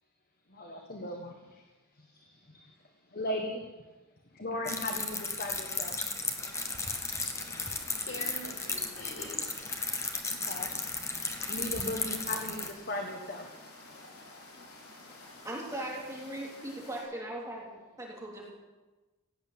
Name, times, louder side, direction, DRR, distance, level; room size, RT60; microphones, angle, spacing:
voice 1, 0.5-1.6 2.0-2.7 3.1-3.7 4.3-5.9 10.3-10.7 11.5-13.5, left 1 dB, 40° left, 2 dB, 1.3 m, -37 dB
sound 1, 4.6-12.7, left 3 dB, 15° left, 1.2 m, -35 dB
sound 2, 6.3-17.0, left 2 dB, 80° left, 5.0 m, -51 dB
voice 2, 7.0-10.1, left 1 dB, 60° left, -4 dB, 5.9 m, -46 dB
voice 3, 15.0-18.5, right 1 dB, 15° right, -3 dB, 3.0 m, -40 dB
16.5 x 8.1 x 8.7 m, 1.2 s
head